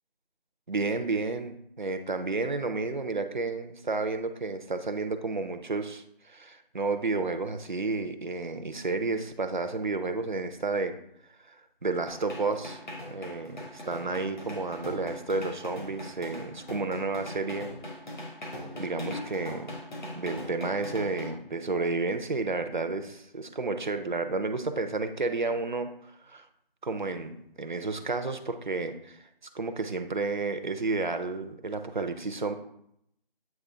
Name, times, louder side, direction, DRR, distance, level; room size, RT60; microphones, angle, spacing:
voice 1, 0.7-11.0 11.5-11.6 11.8-12.8 13.1-17.7 18.8-19.7 20.2-26.5 26.8-29.2 29.5-32.5, right 3 dB, 55° right, 7 dB, 0.6 m, -31 dB
sound 1, 12.1-21.3, left 1 dB, 50° left, 1.5 m, -40 dB
8.2 x 3.1 x 3.7 m, 0.74 s
figure-of-eight pair, 175°, 30 cm